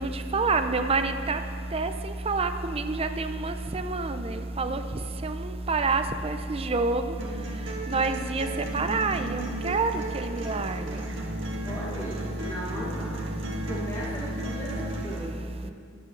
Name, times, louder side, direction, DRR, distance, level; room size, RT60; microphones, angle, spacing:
voice 1, 0.0-1.4 1.7-1.9 2.3-4.8 5.2-5.3 5.7-7.0 7.9-8.5 8.7-10.8, right 3 dB, 30° right, 8 dB, 0.5 m, -27 dB
sound 1, 7.2-15.2, right 1 dB, 65° right, 1.7 m, -36 dB
voice 2, 11.6-13.2 13.7-15.7, equal, 15° left, -6 dB, 1.3 m, -37 dB
10.5 x 8.5 x 6.5 m, 2.3 s
head